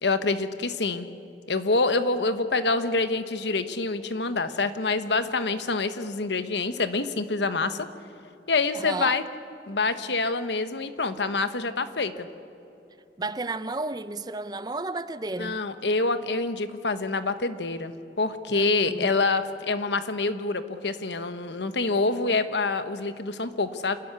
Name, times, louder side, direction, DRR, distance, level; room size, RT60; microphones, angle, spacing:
voice 1, 0.0-1.1 1.5-7.9 8.5-9.2 9.7-12.3 15.4-24.0, left 3 dB, 85° left, 1.2 m, -26 dB
voice 2, 8.7-9.2 13.2-15.6 18.5-19.1, right 2 dB, 20° right, 0.6 m, -32 dB
27.5 x 13.0 x 9.8 m
head